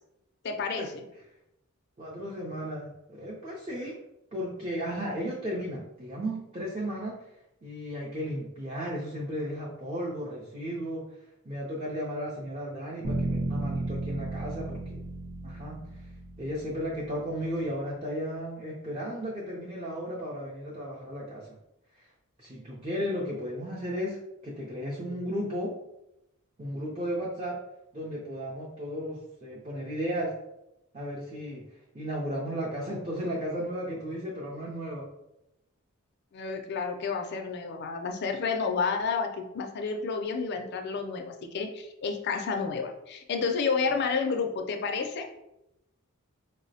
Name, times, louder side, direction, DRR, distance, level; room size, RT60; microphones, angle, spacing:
voice 1, 0.4-1.0 36.3-45.3, left 5 dB, 45° left, 4 dB, 0.3 m, -30 dB
voice 2, 2.0-4.0 4.3-7.1 7.6-11.0 11.4-15.0 15.4-15.8 16.4-21.5 21.9-22.1 22.4-24.2 24.4-25.7 26.6-27.6 27.9-30.3 30.9-31.6 31.9-35.1, equal, 30° right, -4 dB, 0.5 m, -34 dB
sound 1, 13.0-17.1, right 2 dB, 80° right, 0.6 m, -34 dB
4.1 x 2.0 x 2.6 m, 0.87 s
head